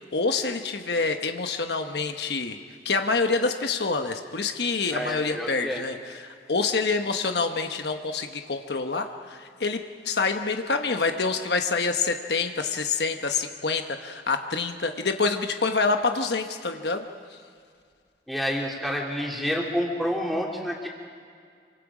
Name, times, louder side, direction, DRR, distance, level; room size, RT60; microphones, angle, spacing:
voice 1, 0.1-2.6 2.8-17.0, left 4 dB, 70° left, 6 dB, 1.1 m, -27 dB
voice 2, 4.9-5.8 18.3-20.9, equal, ahead, -2 dB, 3.1 m, -28 dB
28.0 x 24.5 x 5.0 m, 2.2 s
head